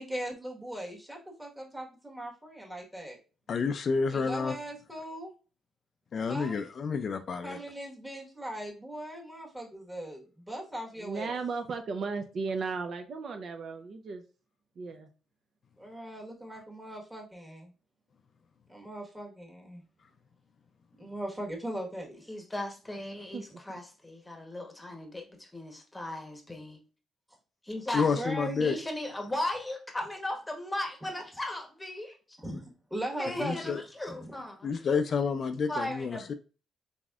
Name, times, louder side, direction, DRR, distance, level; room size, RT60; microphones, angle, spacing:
voice 1, 0.0-3.2 4.1-5.3 6.3-6.6 7.4-11.4 15.8-17.7 18.7-19.8 21.0-22.3 28.1-28.8 32.4-34.3, right 1 dB, 10° right, -1 dB, 1.3 m, -39 dB
voice 2, 3.5-4.6 6.1-7.6 27.9-28.8 33.4-33.8 34.6-36.3, left 5 dB, 50° left, 9 dB, 0.3 m, -29 dB
voice 3, 11.0-14.2 14.8-15.1 23.3-23.6, right 4 dB, 55° right, 6 dB, 0.6 m, -35 dB
voice 4, 22.3-26.8 27.6-28.1 28.6-32.2 33.2-34.7 35.7-36.3, left 1 dB, 15° left, 3 dB, 1.0 m, -37 dB
4.0 x 3.5 x 2.4 m, 0.35 s
cardioid pair, 90°, 0 cm